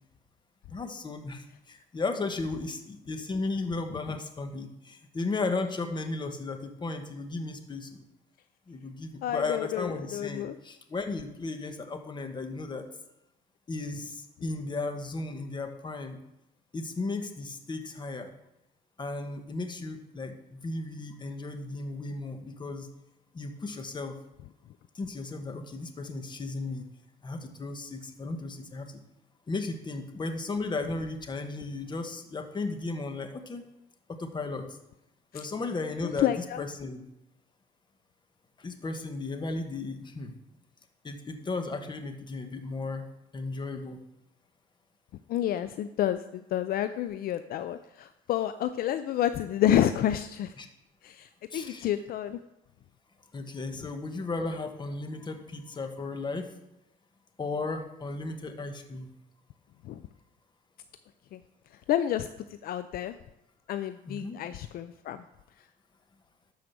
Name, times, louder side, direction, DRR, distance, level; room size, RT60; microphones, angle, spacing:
voice 1, 0.7-8.0 8.7-12.8 13.7-16.2 16.7-18.3 19.0-22.9 23.3-24.1 24.9-26.8 27.2-29.0 29.5-33.6 34.1-34.6 35.3-37.0 38.6-40.3 41.0-43.0 43.3-44.0 50.6-50.7 51.5-51.9 53.3-56.5 57.4-59.1 64.0-64.4, left 3 dB, 25° left, 7 dB, 1.3 m, -35 dB
voice 2, 9.2-10.5 35.3-35.4 36.0-36.6 45.3-50.5 51.0-52.4 59.8-60.0 61.3-61.4 61.9-62.3 62.6-63.2 63.7-65.2, left 11 dB, 60° left, 11 dB, 0.5 m, -29 dB
12.0 x 4.9 x 6.8 m, 0.88 s
cardioid pair, 110°, 17 cm